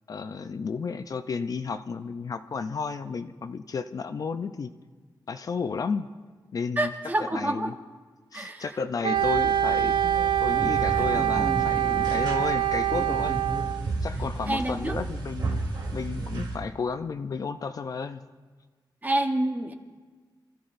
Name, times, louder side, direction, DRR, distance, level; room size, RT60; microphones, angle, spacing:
voice 1, 0.1-4.7 5.3-6.1 6.5-6.9 7.3-7.7 8.3-10.0 10.4-13.4 14.0-15.6 15.9-18.2, left 5 dB, 50° left, 9 dB, 0.4 m, -32 dB
voice 2, 6.8-7.7 8.3-8.6 14.5-15.0 19.0-19.7, right 1 dB, 20° right, 5 dB, 1.0 m, -27 dB
Wind instrument woodwind instrument, 9.0-13.8, right 12 dB, 90° right, 0.4 m, -25 dB
sound 1, 9.2-16.6, right 2 dB, 70° right, 2.2 m, -32 dB
27.0 x 14.5 x 2.6 m, 1.4 s
wide cardioid pair, 165°, 8 cm